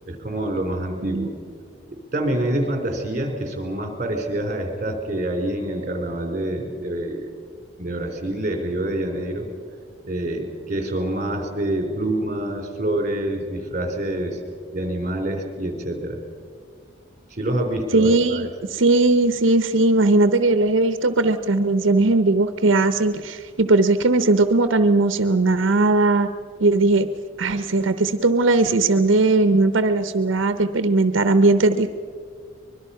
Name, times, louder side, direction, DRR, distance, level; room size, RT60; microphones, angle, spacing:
voice 1, 0.1-1.3 2.1-7.3 7.8-9.5 10.0-14.4 14.7-16.2 17.3-18.5, right 1 dB, 40° right, 4 dB, 3.8 m, -26 dB
voice 2, 17.9-26.3 26.6-27.1 27.4-31.9, right 2 dB, 80° right, 10 dB, 0.8 m, -18 dB
24.5 x 22.0 x 5.7 m, 2.1 s
head